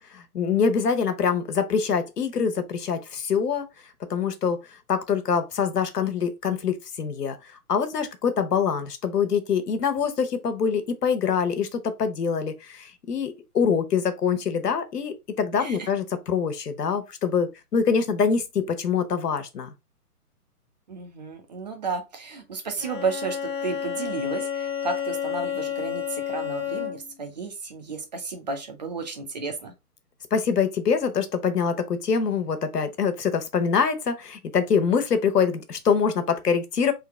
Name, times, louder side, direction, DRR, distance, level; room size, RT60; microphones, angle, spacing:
voice 1, 0.1-3.7 4.1-4.6 4.9-19.7 30.3-36.9, left 6 dB, 85° left, 0.9 m, -24 dB
voice 2, 15.5-15.9 20.9-29.7, right 4 dB, 30° right, 0.6 m, -33 dB
Bowed string instrument, 22.8-27.2, left 9 dB, 15° left, 1.2 m, -30 dB
3.8 x 2.7 x 3.5 m
hypercardioid pair, 145°, 46 cm